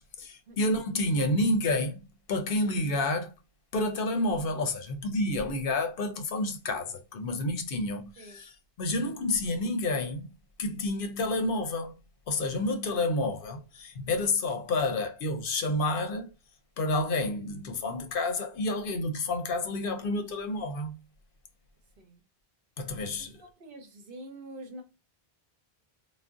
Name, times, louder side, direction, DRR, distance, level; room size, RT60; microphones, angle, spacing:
voice 1, 0.0-2.0 2.3-3.3 3.7-8.5 8.8-10.3 10.6-11.9 12.3-16.3 16.8-21.0 22.8-23.3, left 2 dB, 65° left, 0.7 m, -29 dB
voice 2, 23.3-24.8, right 1 dB, 65° right, 0.8 m, -46 dB
2.5 x 2.0 x 3.5 m
omnidirectional pair, 1.0 m